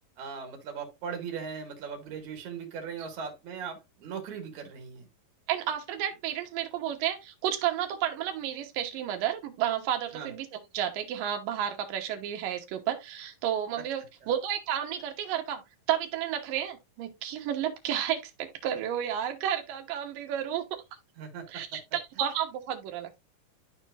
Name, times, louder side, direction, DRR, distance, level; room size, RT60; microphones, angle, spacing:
voice 1, 0.2-5.1 10.1-10.3 21.2-21.8, right 6 dB, 60° right, 3.2 m, -39 dB
voice 2, 5.5-15.6 15.9-20.8 21.5-23.2, right 10 dB, 80° right, 2.8 m, -32 dB
12.5 x 4.4 x 2.5 m
omnidirectional pair, 4.0 m